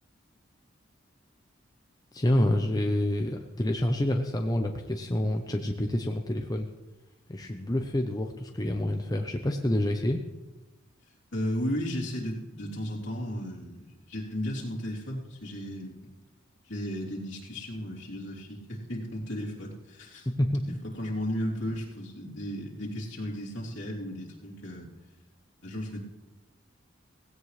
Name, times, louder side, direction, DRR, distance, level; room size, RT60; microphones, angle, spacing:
voice 1, 2.1-6.7 7.3-10.2 20.4-20.8, left 1 dB, 20° left, 3 dB, 0.7 m, -28 dB
voice 2, 11.3-16.0 16.6-20.3 20.9-24.9 25.6-26.0, equal, 65° left, -4 dB, 3.3 m, -34 dB
17.0 x 16.5 x 3.3 m, 1.0 s
head